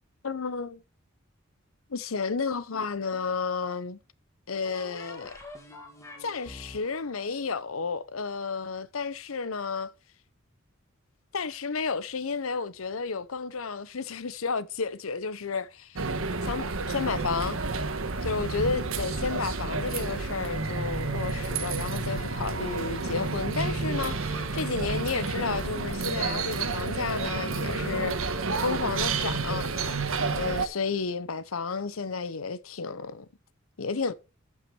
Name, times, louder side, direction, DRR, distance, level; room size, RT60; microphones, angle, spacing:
voice 1, 0.2-0.8 1.9-4.0 4.5-5.4 6.2-9.9 11.3-16.1 16.4-17.6 18.2-30.0 30.3-33.3 33.8-34.1, left 4 dB, 85° left, 0.8 m, -32 dB
sound 1, 2.5-3.4 4.6-8.3, left 2 dB, 15° left, 2.2 m, -47 dB
sound 2, 16.0-30.7, right 4 dB, 85° right, 1.2 m, -30 dB
13.5 x 5.7 x 4.6 m
head